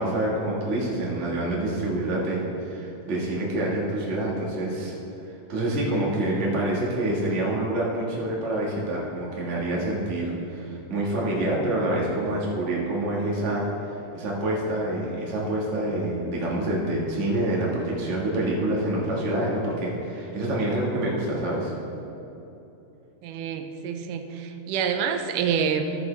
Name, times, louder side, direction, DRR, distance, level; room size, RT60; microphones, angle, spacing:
voice 1, 0.0-5.0 5.5-21.7, right 1 dB, 35° right, -4 dB, 1.2 m, -27 dB
voice 2, 23.2-25.9, right 7 dB, 85° right, 6 dB, 2.2 m, -27 dB
14.0 x 6.8 x 3.3 m, 3.0 s
omnidirectional pair, 3.7 m